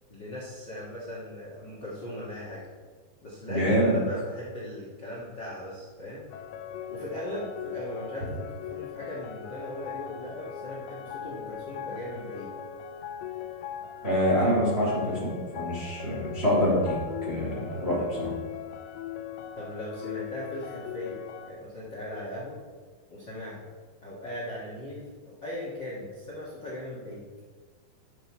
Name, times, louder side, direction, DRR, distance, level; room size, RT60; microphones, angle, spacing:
voice 1, 0.1-2.7 3.2-6.2 6.9-12.5 19.6-22.6 23.1-23.6 24.0-27.3, left 1 dB, 65° left, -5 dB, 1.1 m, -38 dB
voice 2, 3.5-4.0 14.0-17.0 17.3-18.3, equal, 20° right, -6 dB, 2.0 m, -25 dB
sound 1, 6.3-21.5, left 9 dB, 85° left, 2.9 m, -39 dB
10.5 x 7.3 x 4.7 m, 1.5 s
omnidirectional pair, 5.0 m